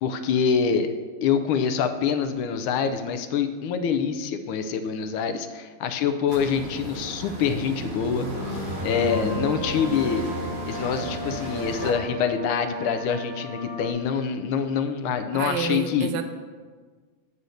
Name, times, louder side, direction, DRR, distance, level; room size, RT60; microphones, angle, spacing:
voice 1, 0.0-0.9 1.2-10.2 10.7-16.1, left 6 dB, 80° left, 9 dB, 1.4 m, -25 dB
sound 1, 6.3-11.9, right 2 dB, 35° right, 0.9 m, -34 dB
sound 2, 8.4-13.9, left 1 dB, 55° left, 1.3 m, -35 dB
voice 2, 15.3-16.2, right 7 dB, 70° right, 7 dB, 1.2 m, -29 dB
9.2 x 4.2 x 6.4 m, 1.5 s
omnidirectional pair, 2.4 m